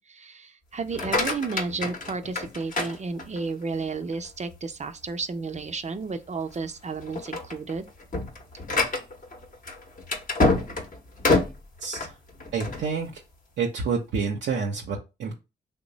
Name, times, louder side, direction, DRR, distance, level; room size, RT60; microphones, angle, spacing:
voice 1, 0.0-7.9, right 4 dB, 40° right, 0.5 m, -32 dB
sound 1, 0.8-3.6 4.1-4.6 5.0-5.1 5.6-5.7 6.4-6.7 7.0-12.9, left 3 dB, 45° left, 0.8 m, -27 dB
voice 2, 12.5-13.1 13.6-15.3, right 5 dB, 90° right, 0.5 m, -28 dB
3.0 x 2.0 x 3.9 m
supercardioid pair, 45°, 19 cm